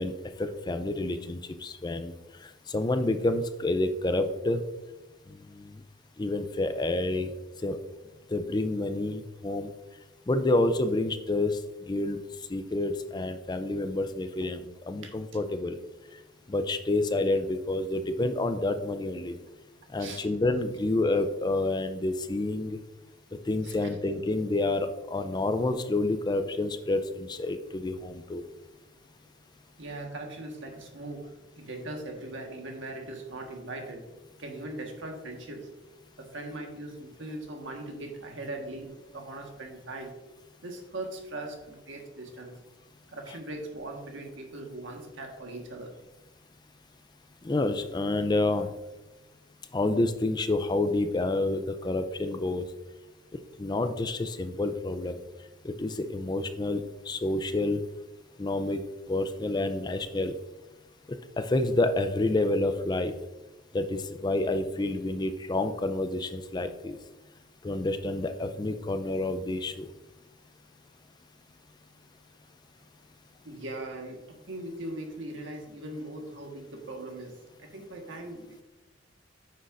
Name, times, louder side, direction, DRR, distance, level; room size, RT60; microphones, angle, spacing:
voice 1, 0.0-4.6 5.3-5.8 6.2-7.3 7.6-7.8 8.3-9.7 10.3-15.8 16.5-19.4 19.9-22.8 23.4-28.4 47.4-48.7 49.7-52.7 53.6-55.2 55.6-57.8 58.4-58.8 59.1-60.3 61.1-63.2 63.7-67.0 67.6-69.9, left 2 dB, 20° left, 9 dB, 0.4 m, -29 dB
voice 2, 29.8-34.1 34.4-35.7 36.2-40.1 40.6-42.5 43.1-45.9 73.4-78.6, right 2 dB, 80° right, 2 dB, 1.4 m, -40 dB
9.3 x 6.4 x 2.5 m, 1.1 s
head